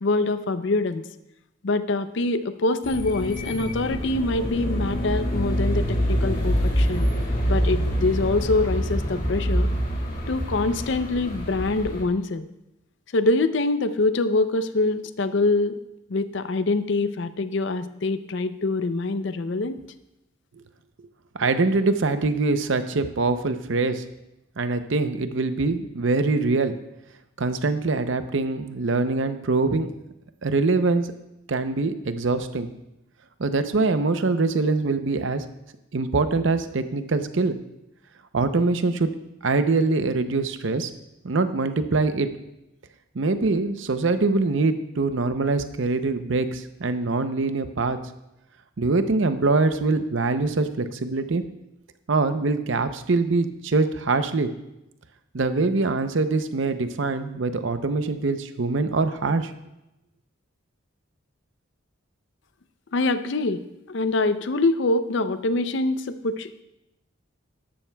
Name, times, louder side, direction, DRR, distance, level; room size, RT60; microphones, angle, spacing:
voice 1, 0.0-1.0 1.6-7.1 7.5-9.7 10.3-12.4 13.1-15.8 16.1-19.8 62.9-63.6 63.9-66.6, left 2 dB, 60° left, 12 dB, 0.5 m, -24 dB
sound 1, 2.8-12.0, equal, 40° left, 1.8 m, -25 dB
voice 2, 21.3-24.0 24.6-26.7 27.4-29.9 30.4-31.1 31.5-32.7 33.4-35.4 35.9-37.6 38.3-39.1 39.4-40.9 41.2-42.3 43.1-48.0 48.8-51.4 52.1-54.5 55.3-59.5, right 3 dB, 65° right, 9 dB, 0.6 m, -23 dB
12.5 x 12.0 x 2.3 m, 0.90 s
head